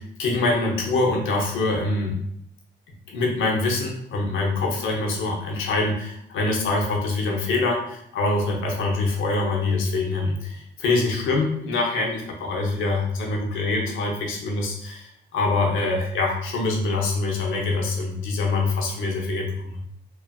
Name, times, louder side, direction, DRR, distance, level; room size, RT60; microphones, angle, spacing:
voice 1, 0.2-2.2 3.1-19.8, left 3 dB, 80° left, -1 dB, 0.7 m, -24 dB
3.0 x 2.3 x 2.2 m, 0.71 s
cardioid pair, 90°, 20 cm